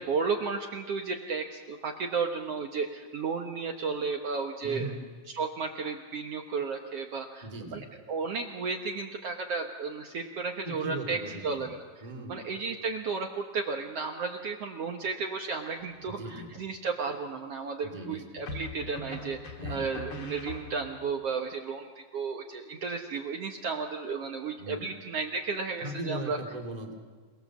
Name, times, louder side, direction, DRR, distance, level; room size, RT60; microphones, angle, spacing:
voice 1, 0.0-4.9 5.3-11.2 11.4-11.8 12.3-26.4, right 5 dB, 60° right, 3 dB, 2.0 m, -33 dB
voice 2, 4.6-5.0 7.4-7.8 10.6-11.7 12.0-12.5 16.1-16.5 17.8-18.5 19.6-19.9 24.6-24.9 25.8-26.9, right 1 dB, 15° right, 2 dB, 2.1 m, -39 dB
sound 1, 15.8-16.4 18.5-21.1, left 3 dB, 45° left, 2.7 m, -41 dB
28.0 x 19.5 x 7.3 m, 1.5 s
omnidirectional pair, 3.5 m